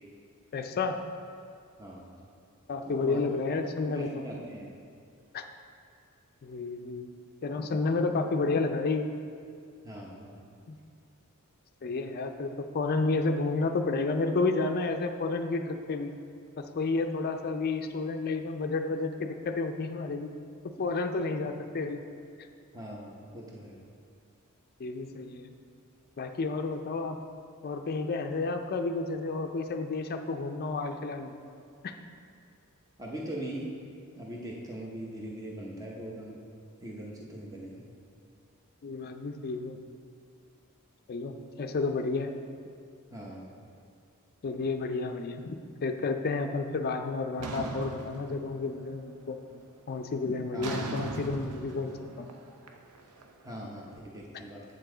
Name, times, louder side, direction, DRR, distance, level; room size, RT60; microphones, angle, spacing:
voice 1, 0.5-1.0 2.7-4.2 5.3-5.4 6.4-7.1 7.4-9.1 10.7-10.8 11.8-16.1 16.6-20.3 20.8-22.0 24.8-25.5 26.2-27.2 27.6-31.4 31.8-31.9 38.8-39.8 41.1-42.3 44.4-49.4 49.9-52.3, left 3 dB, 45° left, 5 dB, 0.4 m, -31 dB
voice 2, 1.8-2.2 2.9-3.3 3.8-4.7 9.8-10.5 22.7-23.8 33.0-33.7 34.2-36.4 36.8-37.9 43.1-43.5 50.5-50.8 53.4-54.6, right 1 dB, 15° right, -3 dB, 0.8 m, -41 dB
sound 1, 47.4-48.9 49.3-49.7 50.6-53.7, right 3 dB, 85° right, 0.6 m, -39 dB
7.8 x 6.9 x 3.8 m, 2.4 s
head